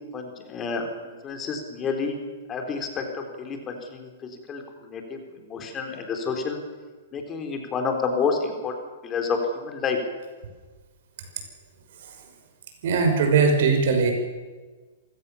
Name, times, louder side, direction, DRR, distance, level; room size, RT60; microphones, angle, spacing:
voice 1, 0.1-2.2 2.5-6.6 7.1-8.7 9.0-10.0, left 5 dB, 25° left, 4 dB, 3.8 m, -29 dB
voice 2, 12.8-14.1, right 5 dB, 65° right, 5 dB, 5.7 m, -20 dB
26.5 x 16.5 x 7.1 m, 1.3 s
hypercardioid pair, 135°, 0 cm